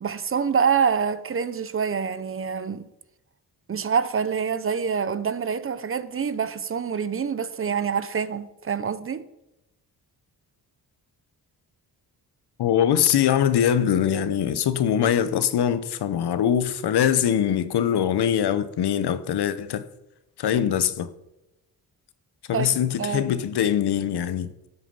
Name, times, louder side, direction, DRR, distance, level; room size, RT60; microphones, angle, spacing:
voice 1, 0.0-2.9 3.7-9.2 22.5-22.7 23.0-23.3, right 6 dB, 35° right, 0.6 m, -26 dB
voice 2, 12.6-19.9 20.4-21.1 22.5-24.5, left 9 dB, 85° left, 1.0 m, -22 dB
13.5 x 8.5 x 5.5 m
wide cardioid pair, 150°, 39 cm